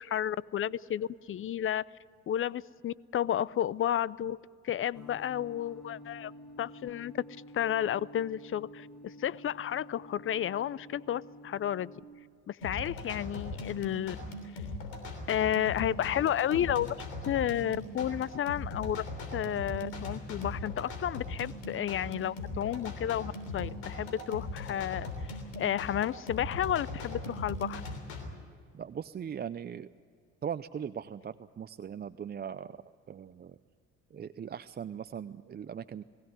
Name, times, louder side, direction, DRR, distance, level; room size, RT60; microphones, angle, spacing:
voice 1, 0.0-1.8 2.3-4.4 4.6-6.3 6.6-7.2 7.5-11.9 12.5-14.2 15.3-17.0 17.3-19.0 19.3-25.1 25.6-27.8, left 10 dB, 40° left, 22 dB, 0.5 m, -32 dB
sound 1, 4.9-12.0, equal, ahead, 6.9 m, -50 dB
sound 2, 12.6-28.2, left 2 dB, 90° left, 3.4 m, -39 dB
voice 2, 28.7-29.9 30.4-32.8 33.1-33.6 34.1-36.0, right 8 dB, 30° right, 12 dB, 0.6 m, -39 dB
20.5 x 16.5 x 9.6 m, 2.3 s
hypercardioid pair, 65°, 32 cm